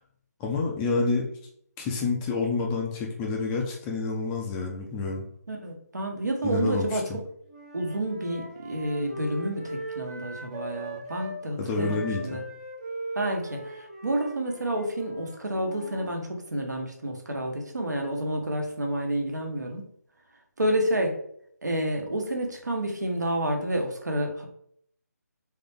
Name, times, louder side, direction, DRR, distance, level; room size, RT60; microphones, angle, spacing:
voice 1, 0.4-1.3 1.8-5.3 6.4-7.0 11.6-12.4, left 3 dB, 10° left, 0 dB, 0.3 m, -28 dB
voice 2, 5.5-7.2 7.7-12.4 13.1-19.8 20.6-21.1 21.6-24.5, right 1 dB, 80° right, 2 dB, 1.2 m, -29 dB
Wind instrument woodwind instrument, 7.5-11.4 11.7-16.1, right 1 dB, 25° right, 1.1 m, -39 dB
3.9 x 3.4 x 3.4 m, 0.68 s
figure-of-eight pair, 155°, 9 cm